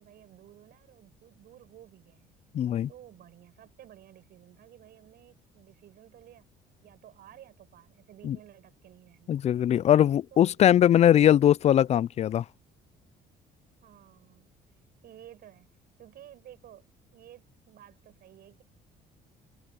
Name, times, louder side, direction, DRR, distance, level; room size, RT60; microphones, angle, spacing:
voice 1, 0.0-2.4 2.9-6.5 6.8-9.4 10.3-10.6 13.8-14.5 15.0-16.9 17.1-18.6, right 12 dB, 65° right, 7.1 m, -53 dB
voice 2, 2.5-2.9 8.2-8.4 9.3-12.4, left 10 dB, 40° left, 0.4 m, -21 dB
open air
cardioid pair, 110°, 17 cm